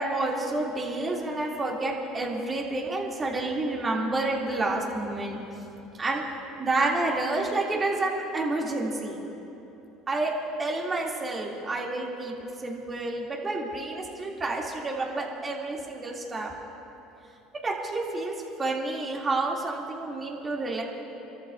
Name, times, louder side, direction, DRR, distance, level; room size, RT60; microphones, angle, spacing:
voice 1, 0.0-5.4 6.0-6.2 6.6-9.2 10.1-10.3 10.6-16.5 17.6-18.3 18.6-20.8, right 2 dB, 30° right, -2 dB, 3.1 m, -29 dB
28.5 x 13.5 x 2.8 m, 3.0 s
supercardioid pair, 85°, 0 cm